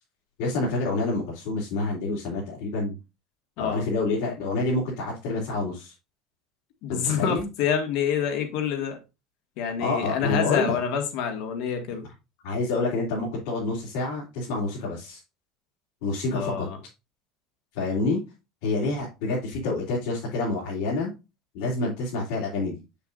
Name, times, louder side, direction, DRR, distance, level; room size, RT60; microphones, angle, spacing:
voice 1, 0.4-3.0 3.6-5.9 6.9-7.5 9.8-10.8 12.4-15.2 16.0-16.7 17.7-18.2 18.6-21.1 21.5-22.8, left 3 dB, 80° left, 3.1 m, -28 dB
voice 2, 6.8-9.0 9.6-12.1 16.3-16.8, left 7 dB, 60° left, 1.7 m, -27 dB
7.5 x 6.9 x 2.5 m
cardioid pair, 175°, 0 cm